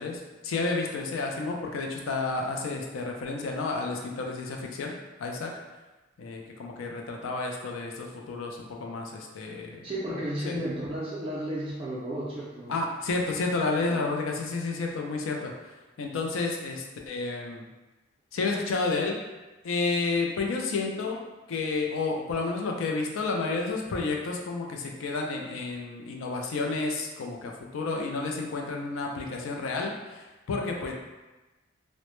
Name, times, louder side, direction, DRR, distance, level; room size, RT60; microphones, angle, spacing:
voice 1, 0.0-4.9 5.2-5.5 6.2-9.9 10.5-10.6 12.7-15.5 16.0-17.7 18.3-19.2 19.6-21.2 21.5-30.9, left 3 dB, 85° left, 1 dB, 0.4 m, -31 dB
voice 2, 9.8-12.8 13.8-14.0, right 1 dB, 30° right, -7 dB, 0.3 m, -33 dB
2.0 x 2.0 x 2.9 m, 1.1 s
head